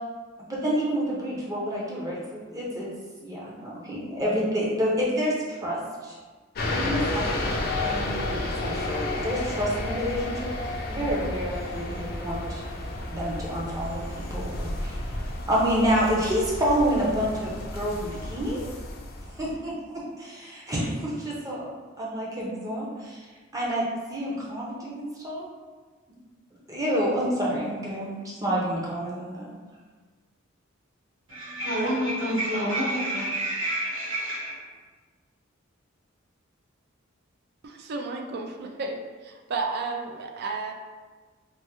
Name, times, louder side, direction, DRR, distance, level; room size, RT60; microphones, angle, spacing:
voice 1, 0.5-2.9 3.2-6.2 6.6-7.5 7.8-10.5 10.9-12.6 13.1-15.1 15.5-18.6 19.4-21.7 22.0-23.3 23.5-23.8 24.1-25.5 26.7-29.5, equal, 15° right, -5 dB, 0.6 m, -28 dB
sound 1, 6.5-19.6, left 1 dB, 50° left, 0.4 m, -32 dB
voice 2, 31.3-34.6, right 1 dB, 90° right, -9 dB, 1.2 m, -28 dB
voice 3, 37.6-40.7, right 3 dB, 55° right, 3 dB, 0.3 m, -32 dB
3.4 x 2.0 x 2.9 m, 1.4 s
head